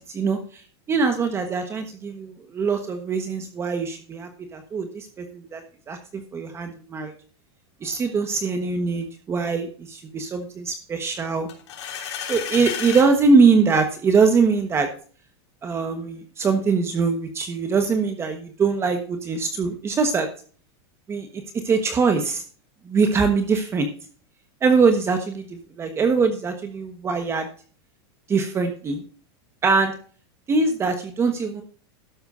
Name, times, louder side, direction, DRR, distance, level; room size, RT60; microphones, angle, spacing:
voice 1, 0.1-0.6 0.9-7.1 7.8-11.5 12.3-14.9 15.6-20.3 21.1-21.3 21.6-22.4 22.9-23.9 24.6-27.5 28.3-29.0 29.6-29.9 30.5-31.6, right 4 dB, 20° right, 6 dB, 1.2 m, -22 dB
sound 1, 11.5-13.1, left 8 dB, 90° left, 3.4 m, -31 dB
12.5 x 11.5 x 2.6 m, 0.41 s
supercardioid pair, 155°, 14 cm